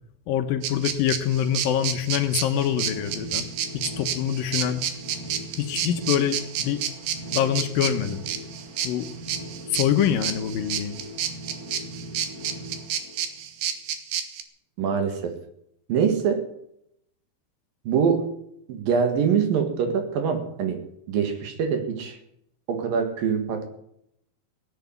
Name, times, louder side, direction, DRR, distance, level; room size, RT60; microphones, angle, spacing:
voice 1, 0.3-4.8 5.6-6.8 7.3-8.3 8.8-9.1 9.7-11.0, left 9 dB, 75° left, 8 dB, 2.6 m, -25 dB
sound 1, 0.6-14.4, right 9 dB, 90° right, 3.4 m, -30 dB
sound 2, 1.8-13.7, right 1 dB, 5° left, 4.5 m, -40 dB
voice 2, 14.8-15.3 15.9-16.4 17.9-18.3 18.7-22.2 22.7-23.7, right 6 dB, 70° right, 7 dB, 3.4 m, -24 dB
17.5 x 8.2 x 9.3 m, 0.75 s
omnidirectional pair, 4.3 m